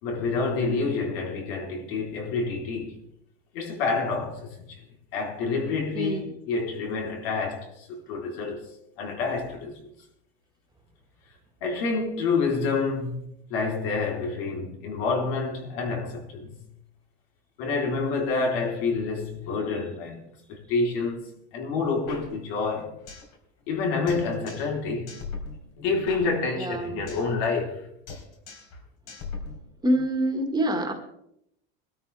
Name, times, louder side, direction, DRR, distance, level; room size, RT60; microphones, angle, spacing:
voice 1, 0.0-3.0 3.5-4.8 5.1-8.7 9.0-9.8 11.6-13.2 13.5-16.6 17.6-22.9 23.7-25.1 25.8-27.9, left 4 dB, 85° left, 3.9 m, -28 dB
voice 2, 5.9-6.3 26.6-27.1 29.8-30.9, right 1 dB, 15° right, 1.7 m, -26 dB
sound 1, 22.1-23.3 23.6-23.7 24.1-24.8 25.1-27.3 27.6-27.8 28.1-28.8 29.1-30.1, left 4 dB, 70° left, 4.0 m, -40 dB
22.5 x 13.0 x 3.4 m
cardioid pair, 150°, 30 cm